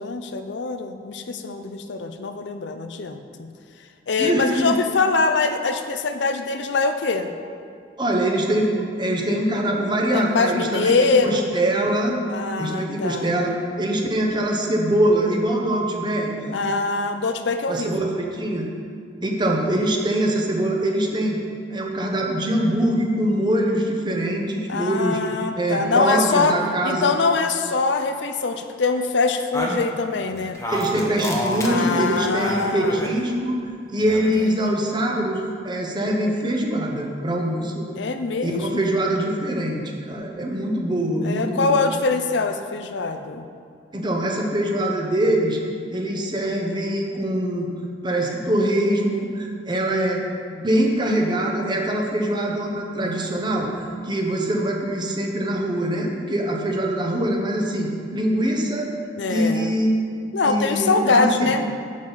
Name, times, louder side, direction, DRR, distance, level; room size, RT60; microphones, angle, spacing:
voice 1, 0.0-3.5 4.1-7.3 10.1-11.5 12.3-13.3 16.5-18.1 24.7-26.6 26.8-30.6 31.6-33.1 38.0-38.9 41.2-43.4 49.8-50.7 53.0-53.2 59.2-59.7 60.3-61.6, left 4 dB, 80° left, 8 dB, 0.6 m, -23 dB
voice 2, 4.2-4.8 8.0-12.2 12.6-16.6 17.7-18.7 19.2-21.4 21.7-25.2 25.6-27.1 30.7-33.6 33.9-37.9 38.4-41.8 43.9-45.6 45.9-47.7 48.0-50.2 50.6-58.9 59.3-61.5, right 1 dB, 25° right, 1 dB, 1.0 m, -23 dB
sound 1, 29.5-33.2 34.0-34.7, equal, 15° left, 1.0 m, -29 dB
10.0 x 7.2 x 4.0 m, 2.3 s
head